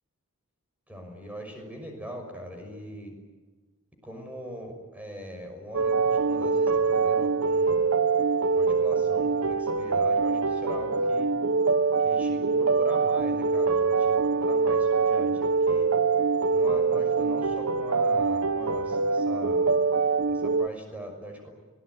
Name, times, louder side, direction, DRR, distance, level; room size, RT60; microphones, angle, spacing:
voice 1, 0.9-3.1 4.0-7.9 8.6-11.3 12.0-15.9 16.5-19.7 20.3-21.5, equal, 5° right, 3 dB, 6.1 m, -41 dB
sound 1, 5.7-20.7, right 4 dB, 70° right, 0.8 m, -24 dB
26.0 x 20.0 x 9.7 m, 1.3 s
head